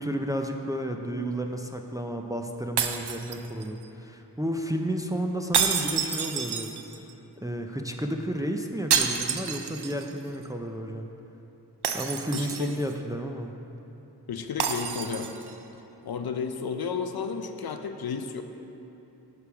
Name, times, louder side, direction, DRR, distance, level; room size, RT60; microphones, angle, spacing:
voice 1, 0.0-6.7 7.4-11.1 11.9-13.5, right 1 dB, 10° right, 4 dB, 0.4 m, -32 dB
sound 1, 2.8-3.8 5.5-7.1 8.9-10.1 10.4-10.5 11.8-12.9 14.6-15.5, right 7 dB, 85° right, 0.5 m, -28 dB
voice 2, 12.3-12.8 14.3-15.3 16.0-18.4, left 6 dB, 70° left, 7 dB, 0.5 m, -32 dB
9.2 x 3.5 x 6.9 m, 2.9 s
wide cardioid pair, 75°, 39 cm